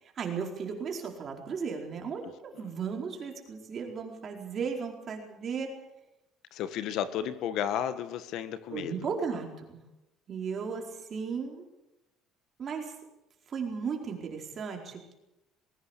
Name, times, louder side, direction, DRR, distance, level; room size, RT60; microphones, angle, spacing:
voice 1, 0.0-5.7 8.7-9.8 10.3-11.7 12.6-12.9 13.5-15.1, right 6 dB, 35° right, 2 dB, 4.6 m, -35 dB
voice 2, 2.2-2.7 6.5-8.9, left 9 dB, 65° left, 12 dB, 1.4 m, -33 dB
21.0 x 16.5 x 8.2 m, 0.93 s
cardioid pair, 145°, 0 cm